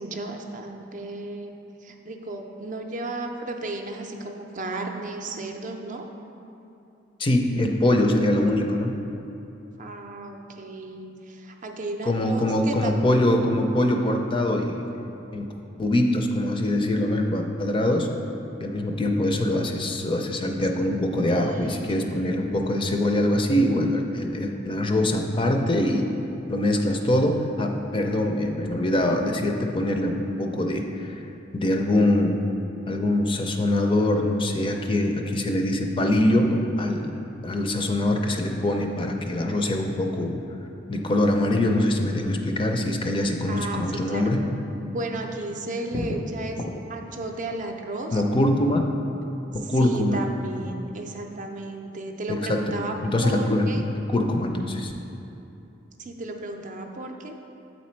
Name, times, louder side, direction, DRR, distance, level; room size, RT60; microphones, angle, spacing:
voice 1, 0.0-1.5 1.8-6.1 9.8-13.1 21.3-22.4 43.5-44.3 44.8-46.6 46.9-48.2 49.6-53.0 53.2-53.9 56.0-57.3, right 2 dB, 45° right, 3 dB, 0.5 m, -34 dB
voice 2, 7.2-9.0 12.1-14.8 15.3-15.5 15.8-18.1 18.6-26.1 26.5-31.2 31.5-32.4 32.9-37.1 37.4-40.4 40.9-44.4 48.1-48.8 49.5-50.2 52.3-52.8 53.1-54.9, left 1 dB, 25° left, 3 dB, 0.4 m, -23 dB
7.9 x 4.1 x 4.4 m, 2.8 s
head